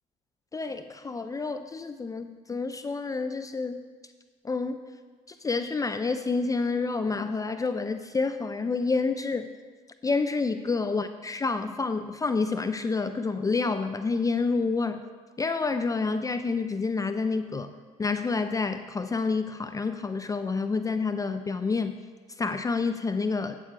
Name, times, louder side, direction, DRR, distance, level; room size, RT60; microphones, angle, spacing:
voice 1, 0.5-3.8 4.4-4.8 5.4-9.5 10.0-15.0 15.4-17.7 18.0-22.0 22.4-23.6, left 4 dB, 25° left, 9 dB, 0.5 m, -28 dB
8.7 x 7.4 x 5.0 m, 1.4 s
supercardioid pair, 65°, 15 cm